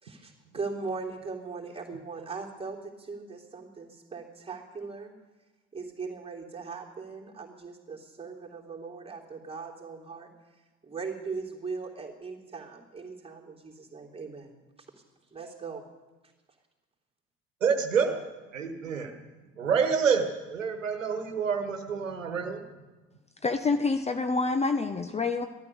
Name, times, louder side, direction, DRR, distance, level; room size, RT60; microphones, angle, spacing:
voice 1, 0.0-5.1 5.7-10.3 10.8-14.9 15.3-15.8, right 4 dB, 15° right, -1 dB, 3.3 m, -39 dB
voice 2, 17.6-18.2 18.5-19.1 19.6-22.6, right 6 dB, 80° right, 6 dB, 1.4 m, -27 dB
voice 3, 23.4-25.5, left 3 dB, 15° left, 8 dB, 0.9 m, -27 dB
15.0 x 13.0 x 6.9 m, 1.2 s
figure-of-eight pair, 60°, 38 cm